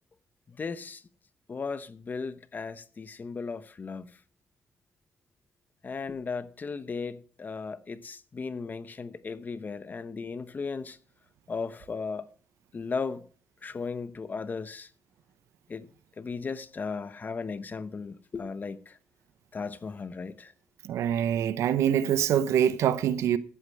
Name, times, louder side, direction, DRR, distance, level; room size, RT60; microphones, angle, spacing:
voice 1, 0.5-1.0 1.5-4.1 5.8-11.0 11.5-12.3 12.7-13.2 13.6-14.9 15.7-15.9 16.2-19.0 19.5-20.5, left 4 dB, 40° left, 1.0 m, -36 dB
voice 2, 20.8-23.4, right 9 dB, 90° right, 0.8 m, -25 dB
14.5 x 8.3 x 4.8 m
cardioid pair, 85°, 5 cm